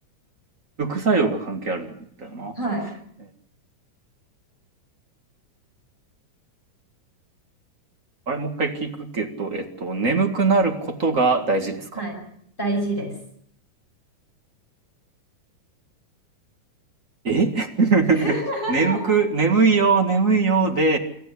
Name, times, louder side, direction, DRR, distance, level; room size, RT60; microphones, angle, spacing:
voice 1, 0.8-1.9 2.2-2.6 8.3-12.0 17.2-18.3 18.7-21.0, right 4 dB, 30° right, 4 dB, 1.8 m, -21 dB
voice 2, 2.5-2.9 11.9-12.2 12.6-13.1 18.1-19.2, right 1 dB, 15° left, 1 dB, 6.5 m, -27 dB
27.5 x 14.0 x 8.4 m, 0.67 s
omnidirectional pair, 3.7 m